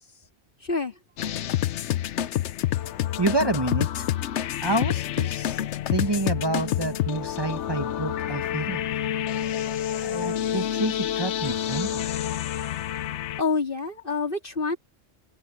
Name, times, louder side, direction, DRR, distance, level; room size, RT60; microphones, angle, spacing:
voice 1, 0.6-1.0 13.4-14.8, left 4 dB, 45° left, 3.0 m, -27 dB
sound 1, 1.2-13.4, left 11 dB, 75° left, 0.9 m, -28 dB
voice 2, 3.2-4.1 4.6-5.6 5.9-8.8 9.9-12.1, right 2 dB, 20° right, 1.1 m, -28 dB
omnidirectional pair, 1.2 m